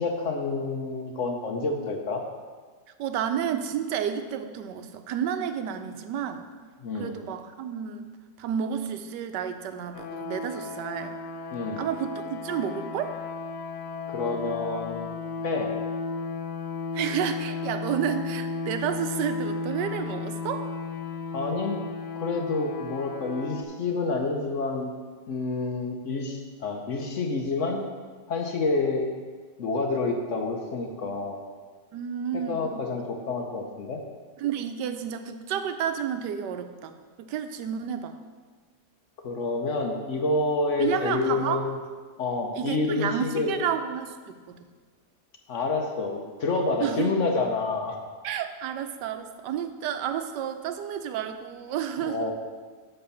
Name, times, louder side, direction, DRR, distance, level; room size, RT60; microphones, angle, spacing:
voice 1, 0.0-2.2 6.8-7.2 11.5-11.8 14.1-15.1 15.4-15.7 21.3-21.8 22.2-24.9 25.3-27.8 28.3-29.1 29.6-31.4 32.3-34.0 39.2-41.8 42.2-43.6 45.5-48.0 52.0-52.3, left 3 dB, 55° left, 3 dB, 1.0 m, -28 dB
voice 2, 3.0-6.5 6.9-8.0 8.4-11.2 11.8-13.1 16.9-20.7 31.9-32.8 34.4-38.2 40.8-41.6 42.6-44.7 46.8-47.1 48.2-52.3, right 9 dB, 90° right, 8 dB, 1.3 m, -31 dB
sound 1, 9.9-23.6, left 4 dB, 90° left, 1.4 m, -34 dB
9.6 x 3.4 x 6.9 m, 1.5 s
omnidirectional pair, 1.8 m